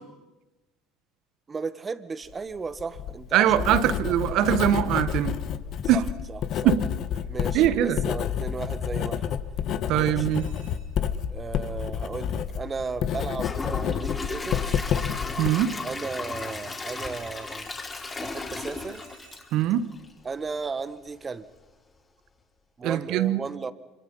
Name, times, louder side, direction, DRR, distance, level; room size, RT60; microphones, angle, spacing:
voice 1, 1.5-4.1 5.9-6.0 6.3-6.7 7.3-9.4 9.9-10.6 11.3-14.8 15.8-17.7 18.2-19.1 20.2-21.4 22.8-23.7, right 4 dB, 25° right, 1.5 m, -35 dB
Writing, 2.7-15.5, left 9 dB, 55° left, 1.4 m, -29 dB
voice 2, 3.3-5.4 5.9-6.1 6.6-6.9 7.5-8.0 9.9-10.5 15.4-15.8 19.5-19.9 22.8-23.4, right 11 dB, 60° right, 1.3 m, -22 dB
sound 1, 10.3-11.1 16.3-19.4, right 8 dB, 85° right, 7.6 m, -54 dB
Gurgling / Toilet flush / Trickle dribble, 13.2-20.2 20.6-20.7 21.2-21.3, left 3 dB, 25° left, 3.9 m, -35 dB
26.0 x 25.5 x 5.6 m
hypercardioid pair, 70°, 0 cm